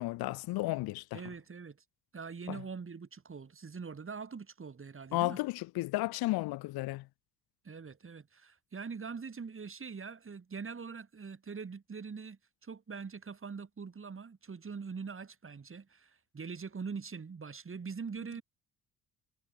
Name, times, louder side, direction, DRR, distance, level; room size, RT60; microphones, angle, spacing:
voice 1, 0.0-1.2 2.5-2.6 5.1-7.0, left 19 dB, 85° left, 1.3 m, -33 dB
voice 2, 1.1-1.8 2.1-5.4 7.6-18.4, right 5 dB, 35° right, 7.6 m, -43 dB
cardioid pair, 80°, 36 cm